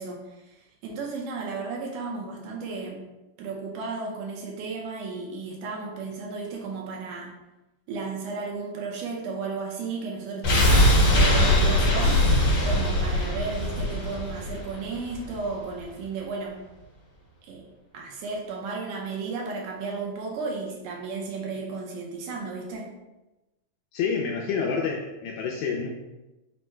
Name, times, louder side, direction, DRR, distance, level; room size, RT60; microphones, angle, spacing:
voice 1, 0.0-3.1 3.4-7.3 7.9-12.3 12.6-16.6 17.4-17.7 17.9-22.9, right 4 dB, 75° right, -1 dB, 2.0 m, -34 dB
sound 1, 10.4-15.4 15.7-15.8, left 1 dB, 60° left, 1.5 m, -21 dB
voice 2, 23.9-25.9, left 5 dB, 80° left, 0 dB, 1.9 m, -28 dB
5.6 x 2.1 x 4.3 m, 1.0 s
omnidirectional pair, 3.9 m